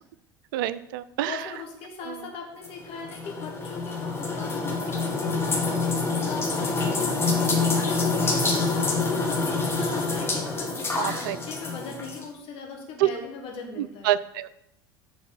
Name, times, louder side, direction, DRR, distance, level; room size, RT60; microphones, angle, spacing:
voice 1, 0.5-1.3 11.0-11.4 13.0-13.1 14.0-14.5, right 14 dB, 65° right, 16 dB, 0.4 m, -26 dB
voice 2, 1.2-14.1, left 5 dB, 50° left, 1 dB, 2.1 m, -40 dB
sound 1, 2.6-12.2, left 3 dB, 20° left, 1.6 m, -26 dB
7.1 x 4.0 x 6.1 m, 0.82 s
hypercardioid pair, 70°, 12 cm